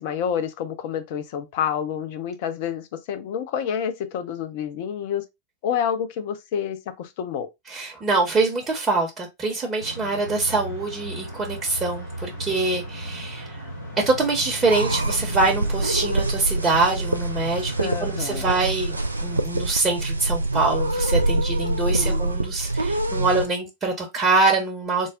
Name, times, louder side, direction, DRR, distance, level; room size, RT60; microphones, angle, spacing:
voice 1, 0.0-5.2 5.6-7.5 17.8-18.5 21.9-22.2, left 8 dB, 50° left, 0.5 m, -28 dB
voice 2, 7.7-13.6 14.0-25.1, right 3 dB, 20° right, 0.8 m, -24 dB
sound 1, 9.8-19.4, right 1 dB, 85° left, 2.3 m, -36 dB
sound 2, 14.7-23.5, right 2 dB, 80° right, 0.3 m, -25 dB
3.8 x 2.0 x 3.5 m
figure-of-eight pair, 90°, 0 cm